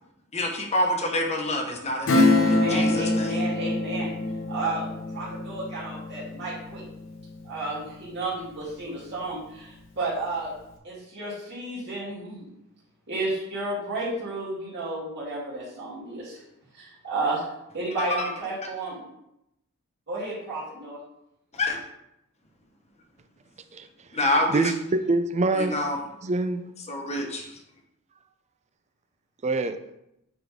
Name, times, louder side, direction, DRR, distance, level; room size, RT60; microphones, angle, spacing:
voice 1, 0.3-3.3 21.5-21.8 24.1-24.7 25.6-26.0 26.9-27.4, left 1 dB, 30° left, 1.1 m, -27 dB
Acoustic guitar / Strum, 2.1-8.3 8.6-8.7, left 2 dB, 65° left, 0.9 m, -25 dB
voice 2, 2.3-4.1 4.5-6.8 7.4-10.5 10.8-12.5 13.1-16.4 16.7-17.4 17.7-19.0 20.1-21.0, right 2 dB, 55° right, 2.4 m, -32 dB
voice 3, 24.5-25.8 26.2-26.6 29.4-29.8, right 2 dB, 30° right, 0.5 m, -25 dB
8.9 x 3.9 x 3.6 m
head